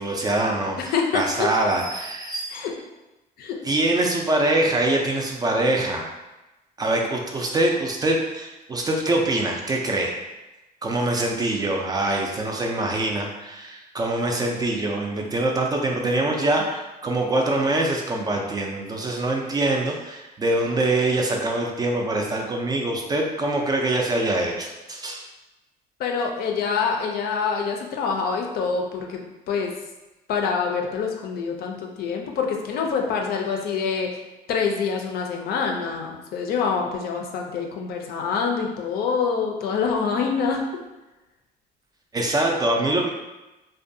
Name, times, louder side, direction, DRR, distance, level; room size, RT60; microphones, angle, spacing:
voice 1, 0.0-2.6 3.6-6.1 6.8-10.2 10.8-25.2 42.1-43.1, right 2 dB, 25° right, 0 dB, 0.3 m, -24 dB
voice 2, 0.8-1.5 2.5-2.7 3.4-3.6 26.0-29.7 30.3-34.2 34.5-40.6, left 5 dB, 65° left, 2 dB, 0.4 m, -26 dB
2.5 x 2.2 x 2.6 m, 1.0 s
cardioid pair, 110°, 17 cm